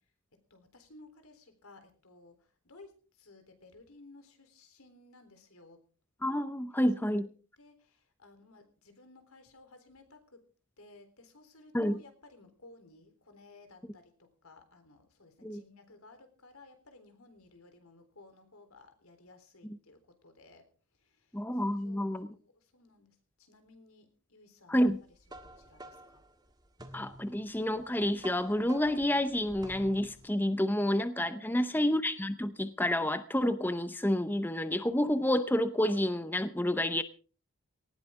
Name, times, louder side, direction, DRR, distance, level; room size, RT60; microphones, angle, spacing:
voice 1, 0.5-5.8 7.0-7.2 7.6-10.4 10.8-20.7 20.9-24.9 25.3-26.2 31.2-31.7, left 2 dB, 85° left, 8 dB, 3.8 m, -57 dB
voice 2, 6.2-7.3 11.7-12.0 15.4-15.6 21.3-22.3 24.7-25.0 26.9-37.0, left 1 dB, 10° left, 11 dB, 0.6 m, -29 dB
sound 1, 24.9-30.3, right 1 dB, 20° right, 1.6 m, -50 dB
18.5 x 15.5 x 3.7 m, 0.39 s
head